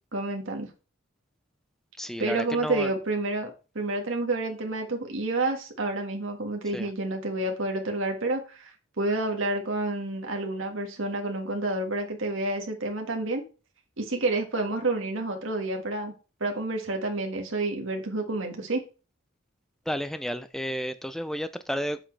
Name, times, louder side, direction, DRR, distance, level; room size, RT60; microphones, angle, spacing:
voice 1, 0.1-0.7 2.2-3.5 3.7-8.7 9.0-13.4 14.0-16.1 16.4-18.8, right 2 dB, 60° right, 1.7 m, -29 dB
voice 2, 2.0-2.9 6.7-6.9 19.9-22.0, equal, ahead, 0.3 m, -32 dB
7.8 x 6.2 x 3.2 m
head